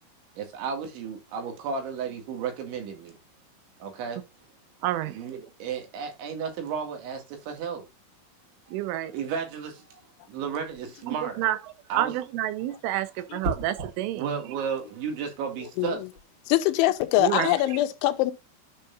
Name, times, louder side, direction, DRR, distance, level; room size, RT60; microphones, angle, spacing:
voice 1, 0.4-3.2 3.8-4.2 5.1-7.9 8.7-8.8 9.1-10.0 10.3-11.4 11.9-12.1 14.1-16.0, right 6 dB, 75° right, 4.4 m, -33 dB
voice 2, 4.8-5.1 8.7-9.1 11.1-11.6 12.0-14.3 17.2-17.6, right 13 dB, 90° right, 3.4 m, -28 dB
sound 1, 13.4-14.0 15.9-16.2, right 2 dB, 35° right, 1.9 m, -33 dB
voice 3, 16.5-18.3, left 16 dB, 85° left, 3.0 m, -23 dB
10.5 x 6.6 x 2.6 m
omnidirectional pair, 5.5 m